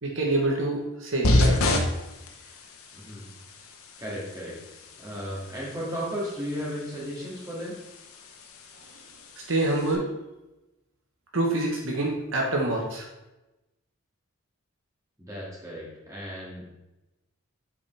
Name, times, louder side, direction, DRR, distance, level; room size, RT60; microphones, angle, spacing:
voice 1, 0.0-1.5 9.5-10.1 11.3-13.0, right 2 dB, 65° right, -1 dB, 1.1 m, -26 dB
sound 1, 1.2-9.9, left 1 dB, 85° left, 1.0 m, -30 dB
voice 2, 2.9-3.3 4.0-4.6 5.0-7.7 15.2-16.7, equal, 15° right, -6 dB, 2.3 m, -35 dB
8.6 x 5.1 x 3.4 m, 1.0 s
head